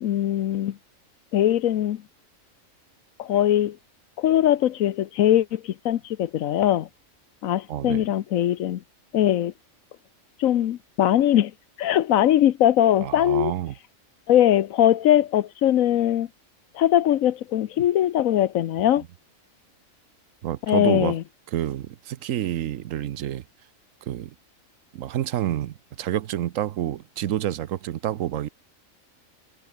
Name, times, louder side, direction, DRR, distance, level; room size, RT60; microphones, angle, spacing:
voice 1, 0.0-0.8 1.3-2.0 3.2-3.8 4.2-6.9 7.4-8.8 9.1-9.5 10.4-11.5 11.8-13.5 14.3-16.3 16.7-19.0 20.7-21.2, left 11 dB, 85° left, 1.2 m, -21 dB
voice 2, 7.7-8.1 13.0-13.7 20.4-21.2 21.5-23.4 24.0-24.3 24.9-28.5, right 12 dB, 80° right, 1.1 m, -28 dB
omnidirectional pair, 1.4 m